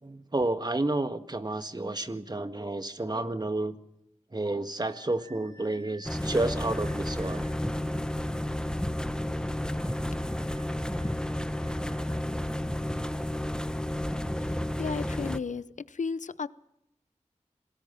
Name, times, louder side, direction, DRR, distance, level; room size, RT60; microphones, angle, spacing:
voice 1, 0.0-3.8 4.3-7.5, right 2 dB, 35° right, 1.7 m, -30 dB
sound 1, 4.8-7.5 9.7-12.2, right 1 dB, 85° right, 7.7 m, -55 dB
sound 2, 6.0-15.4, left 1 dB, 5° left, 1.1 m, -31 dB
voice 2, 14.8-15.6 15.9-16.5, left 5 dB, 80° left, 0.7 m, -33 dB
27.0 x 18.5 x 5.7 m
cardioid pair, 45°, 13 cm